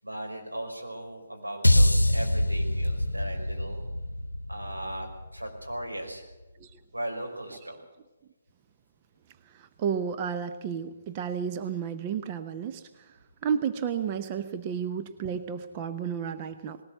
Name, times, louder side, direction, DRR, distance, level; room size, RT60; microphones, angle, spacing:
voice 1, 0.0-3.8 4.5-6.3 6.9-7.8, right 1 dB, 90° right, 1 dB, 5.5 m, -37 dB
sound 1, 1.6-6.0, left 1 dB, 90° left, 0.8 m, -25 dB
voice 2, 9.5-16.8, right 7 dB, 30° right, 8 dB, 0.9 m, -32 dB
19.5 x 18.5 x 8.0 m, 1.1 s
figure-of-eight pair, 135°, 0 cm